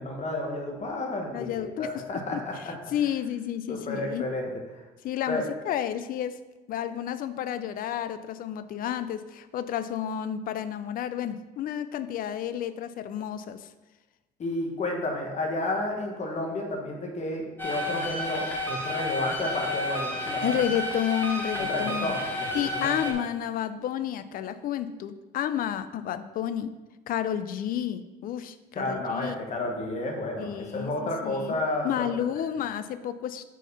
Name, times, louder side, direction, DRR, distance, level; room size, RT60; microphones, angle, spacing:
voice 1, 0.0-2.5 3.7-4.8 5.3-5.4 14.4-20.6 21.6-23.1 28.7-32.1, left 2 dB, 40° left, 1 dB, 1.3 m, -31 dB
voice 2, 1.3-2.0 2.3-4.3 5.0-6.4 6.7-13.7 20.4-22.1 22.5-26.7 27.1-29.4 30.4-31.6 31.8-33.4, left 10 dB, 55° left, 13 dB, 0.4 m, -31 dB
sound 1, 17.6-23.1, left 1 dB, 10° left, 1.1 m, -31 dB
4.6 x 4.4 x 5.5 m, 1.2 s
cardioid pair, 110°, 17 cm